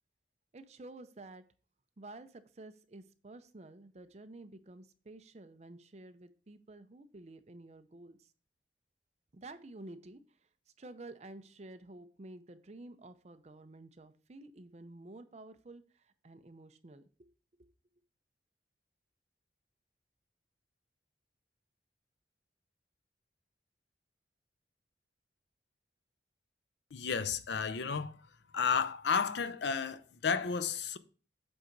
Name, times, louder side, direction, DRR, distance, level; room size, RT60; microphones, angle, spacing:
voice 1, 0.5-1.4 2.0-8.3 9.3-10.5 10.8-17.3 17.6-17.7, right 2 dB, 35° right, 0.5 m, -51 dB
voice 2, 26.9-28.2 28.5-31.0, left 6 dB, 75° left, 0.5 m, -32 dB
7.9 x 3.8 x 4.5 m
head